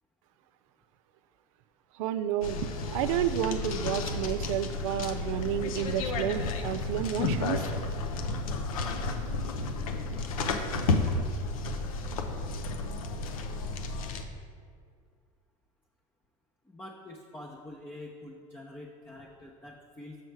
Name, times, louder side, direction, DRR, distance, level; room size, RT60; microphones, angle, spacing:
voice 1, 2.0-7.6, right 11 dB, 75° right, 11 dB, 0.4 m, -31 dB
sound 1, 2.4-14.2, left 3 dB, 85° left, 0.7 m, -32 dB
voice 2, 16.7-20.2, left 1 dB, 10° left, 0 dB, 0.7 m, -46 dB
6.4 x 6.3 x 4.6 m, 2.2 s
hypercardioid pair, 90°, 17 cm